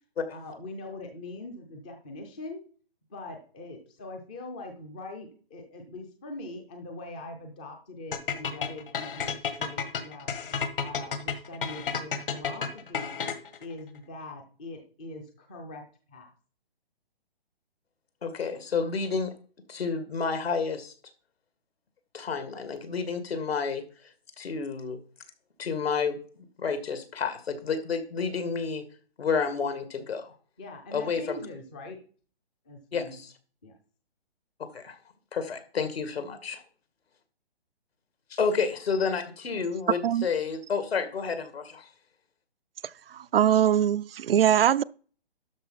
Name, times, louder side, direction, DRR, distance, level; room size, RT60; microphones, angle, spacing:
voice 1, 0.3-2.6 3.1-10.3 10.8-13.1 13.6-15.8 16.1-16.3 30.6-32.0 32.7-33.2 33.6-33.7, left 2 dB, 10° left, 0.5 m, -42 dB
sound 1, 8.1-13.6, left 6 dB, 60° left, 1.6 m, -31 dB
voice 2, 18.2-19.3 19.7-20.9 22.1-23.8 24.4-25.0 25.6-26.2 26.6-28.9 29.2-30.3 30.9-31.4 32.9-33.2 34.7-35.0 35.3-36.6 38.3-41.9, left 5 dB, 75° left, 2.3 m, -30 dB
voice 3, 43.1-44.8, right 10 dB, 65° right, 0.5 m, -22 dB
12.0 x 4.6 x 5.6 m
hypercardioid pair, 160°, 31 cm